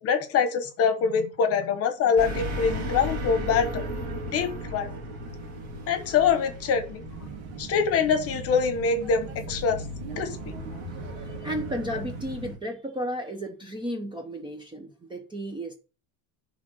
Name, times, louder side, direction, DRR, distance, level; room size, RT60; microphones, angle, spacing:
voice 1, 0.0-3.8 4.3-4.9 5.9-7.0 7.6-9.8 10.2-10.4, left 6 dB, 35° left, 1.2 m, -24 dB
sound 1, 2.2-12.6, equal, 35° right, 2.9 m, -36 dB
sound 2, 7.1-12.5, right 5 dB, 75° right, 2.0 m, -41 dB
voice 2, 11.2-15.8, equal, 10° right, 0.8 m, -33 dB
10.0 x 3.7 x 6.1 m
cardioid pair, 170°, 43 cm